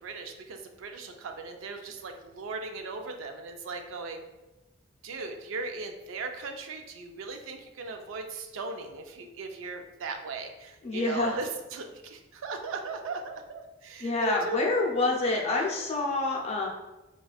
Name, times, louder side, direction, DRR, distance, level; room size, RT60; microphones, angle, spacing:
voice 1, 0.0-4.2 5.0-14.6, right 4 dB, 75° right, 5 dB, 0.4 m, -38 dB
voice 2, 10.8-11.4 14.0-16.7, left 2 dB, 30° left, -2 dB, 0.5 m, -27 dB
4.0 x 2.3 x 2.3 m, 1.1 s
head